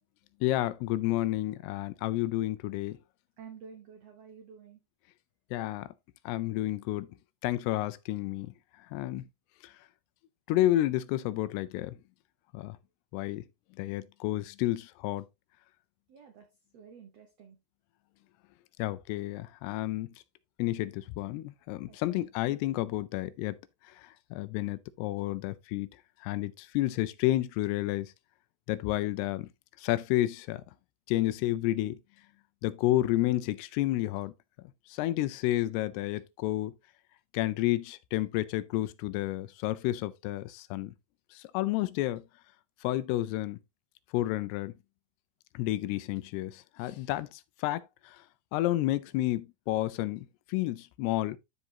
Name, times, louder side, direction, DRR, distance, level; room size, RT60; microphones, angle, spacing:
voice 1, 0.4-3.0 5.5-5.9 6.3-7.1 7.4-8.5 8.9-9.3 9.6-9.7 10.5-12.0 12.5-12.8 13.1-13.4 13.8-15.3 18.8-20.1 20.6-23.6 24.0-25.9 26.2-28.1 28.7-29.5 29.8-30.6 31.1-32.0 32.6-34.3 34.9-36.7 37.3-40.9 41.3-42.2 42.8-43.6 44.1-44.7 45.5-48.2 48.5-51.4, left 16 dB, 85° left, 2.7 m, -30 dB
voice 2, 3.4-4.8 16.1-17.6 21.9-22.3 24.5-24.6, right 6 dB, 90° right, 1.4 m, -51 dB
12.5 x 4.9 x 2.8 m
omnidirectional pair, 4.6 m